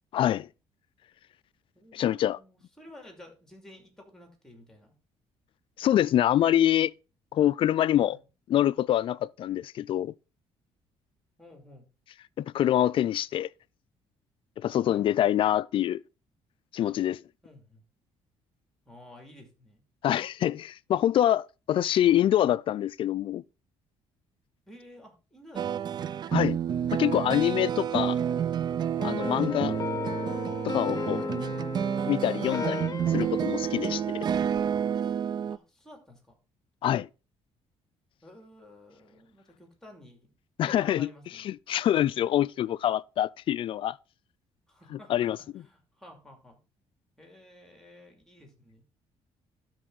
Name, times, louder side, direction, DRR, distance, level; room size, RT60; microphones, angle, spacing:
voice 1, 0.1-0.5 1.9-2.4 5.8-6.9 7.3-8.2 8.5-10.1 12.4-13.5 14.6-16.0 16.7-17.2 20.0-23.4 26.3-26.6 26.9-28.2 29.0-29.7 30.6-31.2 32.1-32.8 33.1-34.2 36.8-37.1 40.6-41.1 41.4-44.0 44.9-45.4, left 11 dB, 50° left, 0.3 m, -25 dB
voice 2, 1.7-4.9 8.0-8.2 11.4-11.9 14.8-15.1 17.4-17.8 18.8-19.8 24.7-26.0 29.5-30.1 31.1-31.6 35.5-36.4 38.2-40.3 40.6-41.4 44.7-46.6 47.2-48.8, left 1 dB, 5° left, 2.7 m, -52 dB
sound 1, 25.6-35.6, right 8 dB, 40° right, 0.3 m, -29 dB
sound 2, 29.0-34.6, left 4 dB, 35° left, 0.9 m, -35 dB
12.5 x 4.5 x 3.9 m
cardioid pair, 120°, 11 cm